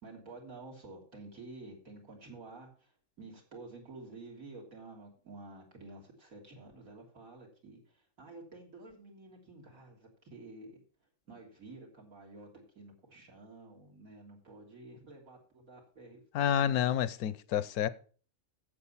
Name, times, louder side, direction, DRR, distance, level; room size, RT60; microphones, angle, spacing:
voice 1, 0.0-2.9 3.2-10.8 11.3-16.9, right 3 dB, 65° right, 3.6 m, -51 dB
voice 2, 16.3-17.9, left 10 dB, 75° left, 1.2 m, -29 dB
8.6 x 7.8 x 5.6 m
omnidirectional pair, 1.6 m